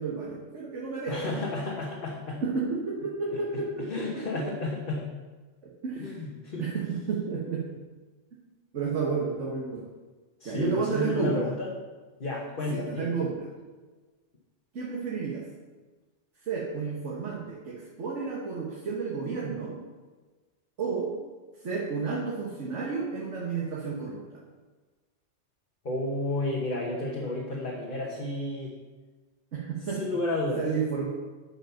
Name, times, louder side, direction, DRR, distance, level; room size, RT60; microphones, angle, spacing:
voice 1, 0.0-1.7 2.4-4.4 5.8-6.1 6.6-7.6 8.7-9.9 10.4-11.5 12.7-13.5 14.7-15.4 16.5-19.7 20.8-21.1 21.6-24.2 29.5-30.0 30.6-31.1, right 5 dB, 80° right, -4 dB, 1.7 m, -31 dB
voice 2, 1.1-2.4 3.3-5.1 6.0-6.7 10.4-11.7 12.2-13.1 25.8-28.8 30.0-30.6, left 2 dB, 45° left, -3 dB, 1.3 m, -32 dB
9.7 x 5.2 x 5.7 m, 1.3 s
omnidirectional pair, 1.2 m